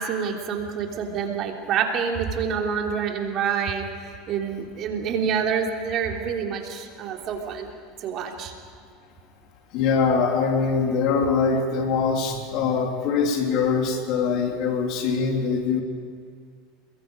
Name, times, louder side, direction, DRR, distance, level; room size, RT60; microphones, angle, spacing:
voice 1, 0.0-3.9 4.3-7.7 8.0-8.5, right 7 dB, 50° right, 2 dB, 3.2 m, -27 dB
voice 2, 9.7-15.8, left 5 dB, 60° left, 2 dB, 3.4 m, -23 dB
28.5 x 22.5 x 5.3 m, 2.1 s
supercardioid pair, 115°, 0 cm